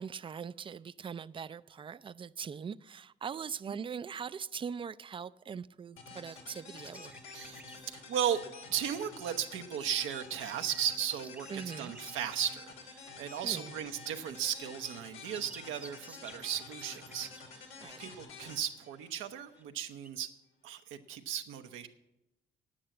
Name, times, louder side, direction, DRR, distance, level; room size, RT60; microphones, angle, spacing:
voice 1, 0.0-7.2 11.5-11.9 13.4-13.7 17.8-18.0, right 6 dB, 25° right, 0.3 m, -41 dB
sound 1, 6.0-19.6, left 4 dB, 90° left, 2.6 m, -50 dB
sound 2, 6.8-8.0 10.1-12.2 14.5-14.6 14.8-18.1 18.7-18.9 19.6-20.1, right 1 dB, 5° right, 0.8 m, -54 dB
voice 2, 7.3-8.4 8.7-20.3 20.6-21.9, right 9 dB, 90° right, 0.8 m, -36 dB
9.0 x 8.7 x 7.5 m
cardioid pair, 90°, 20 cm